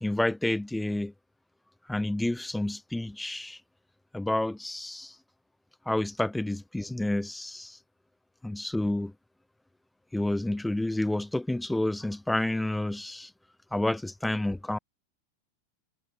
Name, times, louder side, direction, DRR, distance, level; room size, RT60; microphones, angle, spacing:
voice 1, 0.0-1.1 1.9-3.6 4.1-5.1 5.9-7.8 8.4-9.1 10.1-13.3 13.7-14.8, left 1 dB, 5° left, 0.4 m, -29 dB
figure-of-eight pair, 90°, 0 cm